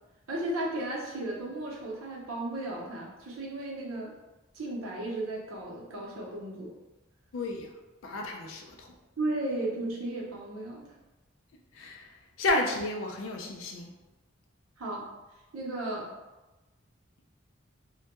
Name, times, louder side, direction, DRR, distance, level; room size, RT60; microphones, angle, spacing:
voice 1, 0.3-4.1 4.5-6.7 9.2-10.9 14.8-15.1 15.5-16.1, right 1 dB, 85° right, -3 dB, 0.7 m, -34 dB
voice 2, 7.3-7.7 8.0-8.9 11.7-13.9, left 2 dB, 65° left, 2 dB, 0.4 m, -32 dB
2.1 x 2.1 x 2.9 m, 1.1 s
head